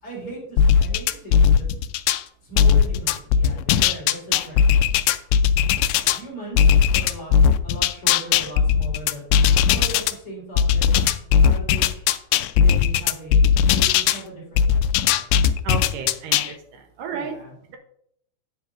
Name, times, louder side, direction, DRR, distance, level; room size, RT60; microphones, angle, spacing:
voice 1, 0.0-1.6 2.4-4.9 5.9-7.3 7.6-9.2 9.6-12.1 12.6-15.2 17.1-17.6, right 1 dB, 35° left, -4 dB, 4.4 m, -38 dB
sound 1, 0.6-2.2 2.6-6.2 6.6-10.1 10.6-14.2 14.6-16.5, left 8 dB, 85° left, 2.2 m, -18 dB
voice 2, 15.6-16.4 17.0-17.3, right 6 dB, 75° right, 4 dB, 2.1 m, -30 dB
11.0 x 9.3 x 2.5 m, 0.70 s
omnidirectional pair, 4.9 m